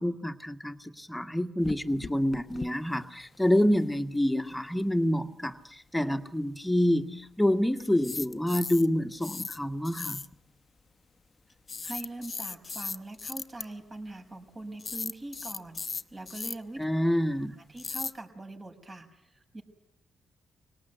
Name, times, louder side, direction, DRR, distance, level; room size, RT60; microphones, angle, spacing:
voice 1, 0.0-10.2 16.8-17.6, equal, 5° left, 5 dB, 1.8 m, -27 dB
sound 1, 1.6-2.7 2.9-3.0 3.3-3.4 7.9-8.9 9.2-9.6 9.8-10.3 11.7-13.6 14.8-16.5 17.8-18.1, left 4 dB, 40° left, 1.0 m, -37 dB
voice 2, 11.8-16.8 17.7-19.6, right 2 dB, 35° right, 4 dB, 6.1 m, -42 dB
25.5 x 18.5 x 9.4 m, 0.80 s
supercardioid pair, 60°, 0 cm